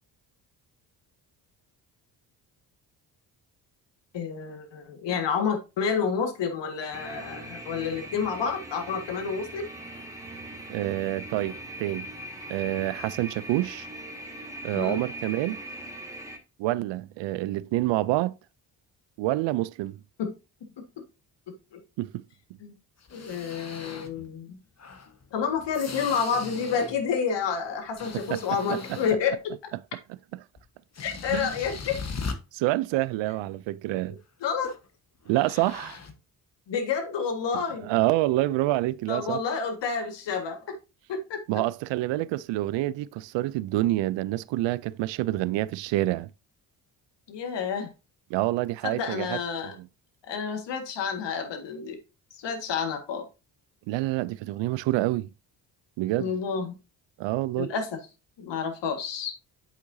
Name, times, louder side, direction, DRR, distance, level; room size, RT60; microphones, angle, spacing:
voice 1, 4.1-9.6 14.7-15.0 20.2-20.3 21.0-21.1 21.5-21.8 22.6-22.7 23.1-24.6 25.3-29.5 31.0-32.0 34.4-34.7 36.7-37.9 39.1-40.8 41.1-41.4 47.3-47.9 48.8-49.7 50.3-52.0 52.4-53.3 56.2-56.7 57.6-57.9 58.4-59.3, left 6 dB, 65° left, 1.8 m, -29 dB
sound 1, 6.9-16.4, right 1 dB, 5° right, 2.0 m, -40 dB
voice 2, 10.7-12.1 12.5-13.9 14.6-15.6 16.6-18.3 19.2-20.0 22.0-22.2 28.1-28.4 28.7-29.0 30.3-30.4 31.3-31.5 32.5-34.2 35.3-36.0 37.8-39.4 41.5-46.3 48.3-49.9 53.9-55.3 56.0-56.3 57.2-57.7, right 17 dB, 75° right, 0.5 m, -27 dB
sound 2, 23.0-24.3 24.8-27.1 27.4-29.4 30.6-30.7 30.9-32.3 34.6-34.9 35.2-36.1, left 4 dB, 35° left, 1.3 m, -39 dB
8.1 x 6.0 x 2.7 m
supercardioid pair, 60°, 45 cm